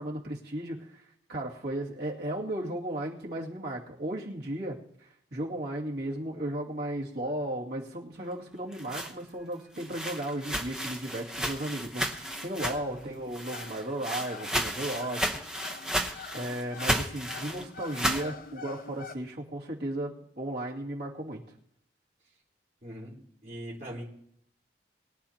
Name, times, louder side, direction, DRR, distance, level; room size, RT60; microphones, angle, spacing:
voice 1, 0.0-15.4 16.3-21.4, right 1 dB, 65° right, -4 dB, 2.4 m, -35 dB
sound 1, 8.5-13.0 13.3-18.3, equal, 5° right, 0.9 m, -33 dB
sound 2, 9.7-19.2, left 5 dB, 50° left, 0.5 m, -48 dB
voice 2, 22.8-24.0, right 1 dB, 40° right, -7 dB, 3.9 m, -42 dB
22.5 x 10.5 x 2.9 m, 0.72 s
head